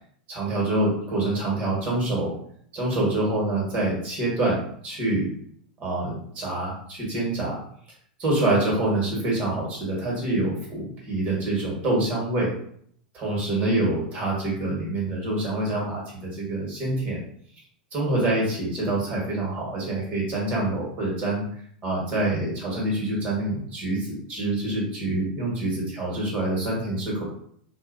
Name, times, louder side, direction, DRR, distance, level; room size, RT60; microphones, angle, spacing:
voice 1, 0.3-2.3 2.7-4.6 4.8-5.3 5.8-7.6 8.2-12.5 13.1-17.2 17.9-21.4 21.8-27.3, right 2 dB, 35° right, -4 dB, 1.5 m, -26 dB
2.6 x 2.4 x 2.6 m, 0.62 s
hypercardioid pair, 100°, 5 cm